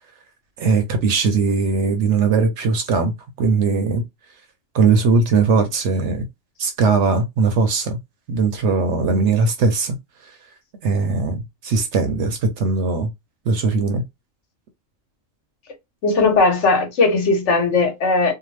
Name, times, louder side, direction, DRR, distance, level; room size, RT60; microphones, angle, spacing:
voice 1, 0.6-3.1 3.4-4.0 4.7-6.3 6.6-8.0 8.3-10.0 10.8-13.1 13.5-14.0, right 4 dB, 65° right, 0.8 m, -19 dB
voice 2, 16.0-18.3, left 3 dB, 60° left, 1.1 m, -17 dB
2.7 x 2.0 x 3.1 m
omnidirectional pair, 1.4 m